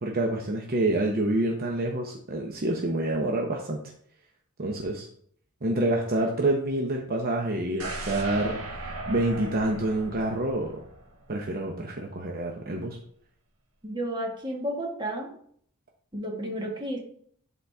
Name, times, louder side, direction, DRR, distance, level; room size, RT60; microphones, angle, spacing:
voice 1, 0.0-3.8 4.6-5.1 5.6-10.8 11.3-13.0, right 1 dB, 45° right, 1 dB, 0.8 m, -27 dB
sound 1, 7.8-11.8 12.1-12.2, right 2 dB, 85° right, 1.5 m, -38 dB
voice 2, 13.8-15.3 16.1-17.0, right 1 dB, 20° right, 0 dB, 1.6 m, -32 dB
11.5 x 4.1 x 3.5 m, 0.63 s
head